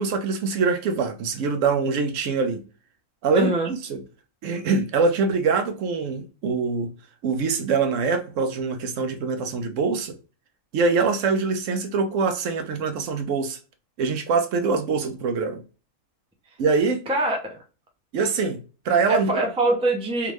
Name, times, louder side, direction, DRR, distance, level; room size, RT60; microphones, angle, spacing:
voice 1, 0.0-2.6 3.2-4.0 4.4-6.9 7.2-10.2 10.7-13.6 14.0-15.6 16.6-17.0 18.1-19.4, right 4 dB, 70° right, 0.9 m, -24 dB
voice 2, 3.3-3.7 17.1-17.6 19.1-20.3, right 1 dB, 5° right, 0.5 m, -23 dB
3.5 x 2.5 x 3.0 m
omnidirectional pair, 1.4 m